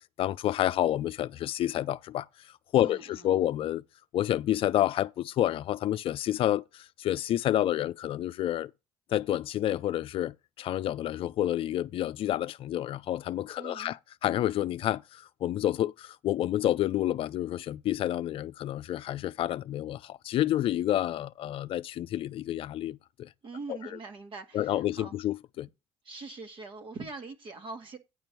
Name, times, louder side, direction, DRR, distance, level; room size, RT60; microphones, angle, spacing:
voice 1, 0.2-2.3 2.7-3.8 4.1-8.7 9.1-23.3 23.7-23.8 24.5-25.7, left 12 dB, 60° left, 0.5 m, -29 dB
voice 2, 2.7-3.3 13.6-13.9 23.4-25.1 26.0-28.0, right 3 dB, 55° right, 2.0 m, -43 dB
9.6 x 4.5 x 6.8 m
supercardioid pair, 70°, 11 cm